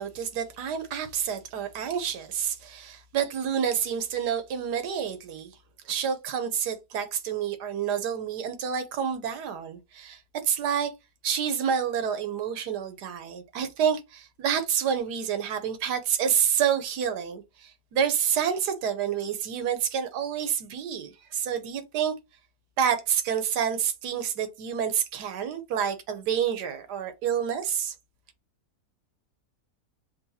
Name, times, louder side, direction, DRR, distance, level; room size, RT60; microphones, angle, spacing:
voice 1, 0.0-5.5 5.8-10.9 11.2-22.1 22.8-27.9, right 8 dB, 90° right, 1.4 m, -28 dB
6.7 x 2.3 x 2.7 m
omnidirectional pair, 1.7 m